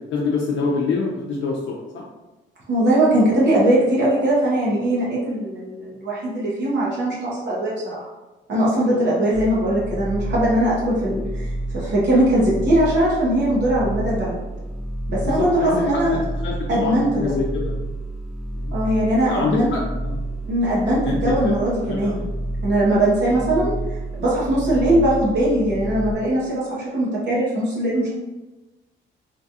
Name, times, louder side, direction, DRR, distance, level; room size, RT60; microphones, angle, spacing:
voice 1, 0.1-2.0 8.7-8.8 9.3-9.4 15.2-17.8 18.5-18.7 19.3-20.2 21.0-21.5 21.8-22.3 23.2-23.4, left 4 dB, 70° left, -2 dB, 0.5 m, -26 dB
voice 2, 2.7-8.1 8.5-14.4 15.1-16.2 16.7-17.3 18.7-19.7 20.5-22.3 22.6-28.1, right 1 dB, 60° right, -6 dB, 1.0 m, -20 dB
sound 1, 9.3-26.1, right 1 dB, ahead, 0.4 m, -30 dB
3.1 x 2.3 x 2.7 m, 1.1 s
cardioid pair, 90°, 20 cm